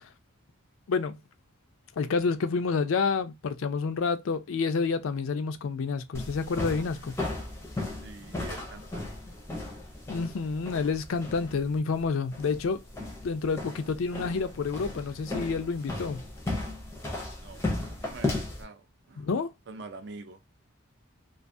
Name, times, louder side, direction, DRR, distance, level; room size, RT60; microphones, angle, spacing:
voice 1, 2.0-7.1 10.1-12.8 13.2-16.2 19.2-19.5, left 4 dB, 75° left, 0.4 m, -29 dB
sound 1, 6.1-18.6, left 2 dB, 10° left, 0.5 m, -36 dB
voice 2, 7.9-9.4 17.4-19.3 19.7-20.4, right 3 dB, 55° right, 0.4 m, -46 dB
2.4 x 2.3 x 2.5 m
head